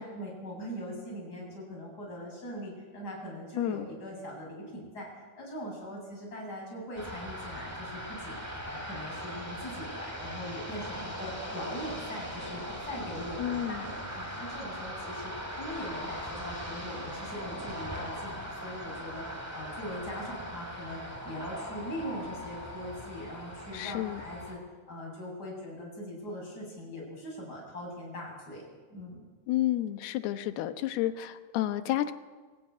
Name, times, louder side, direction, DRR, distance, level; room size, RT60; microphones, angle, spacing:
voice 1, 0.0-28.6 28.9-29.2, equal, 20° left, -1 dB, 8.4 m, -41 dB
voice 2, 3.6-3.9 13.4-13.8 23.7-24.2 29.5-32.1, left 13 dB, 75° left, 9 dB, 3.0 m, -30 dB
sound 1, 7.0-24.6, equal, 5° right, 3.9 m, -40 dB
24.0 x 16.0 x 9.9 m, 1.4 s
omnidirectional pair, 4.7 m